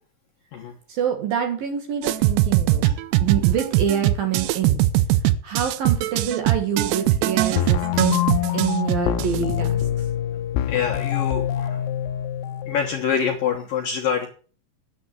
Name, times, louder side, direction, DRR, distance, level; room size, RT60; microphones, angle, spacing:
voice 1, 0.9-2.8 3.2-4.8 5.4-8.2 8.5-10.1, right 8 dB, 60° right, 5 dB, 2.9 m, -26 dB
sound 1, 2.0-9.7, right 15 dB, 85° right, 2.4 m, -21 dB
sound 2, 7.6-13.6, left 12 dB, 80° left, 2.5 m, -25 dB
voice 2, 10.7-11.8 12.7-14.3, left 7 dB, 65° left, 1 dB, 2.3 m, -25 dB
10.0 x 8.4 x 7.5 m, 0.40 s
omnidirectional pair, 5.7 m